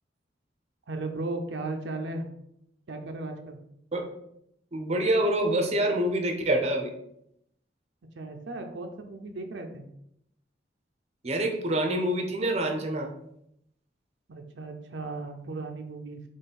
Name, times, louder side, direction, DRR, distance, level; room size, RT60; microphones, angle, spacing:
voice 1, 0.9-2.2 2.9-3.6 8.1-9.9 14.3-16.2, right 2 dB, 85° right, 4 dB, 0.6 m, -36 dB
voice 2, 4.7-6.9 11.2-13.1, right 1 dB, 35° right, 4 dB, 0.6 m, -26 dB
3.8 x 3.1 x 4.2 m, 0.75 s
head